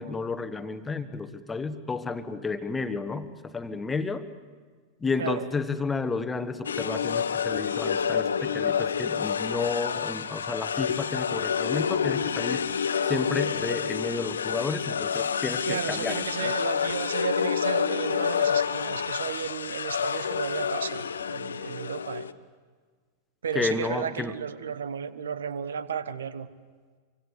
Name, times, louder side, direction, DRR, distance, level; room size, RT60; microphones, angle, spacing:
voice 1, 0.0-4.3 5.0-12.6 13.0-16.5 23.5-24.3, left 4 dB, 15° left, 10 dB, 1.5 m, -31 dB
sound 1, 6.6-22.3, left 7 dB, 70° left, 0.8 m, -28 dB
voice 2, 15.7-22.3 23.4-26.5, right 7 dB, 65° right, 15 dB, 1.1 m, -33 dB
25.5 x 25.0 x 8.1 m, 1.5 s
figure-of-eight pair, 90°, 0 cm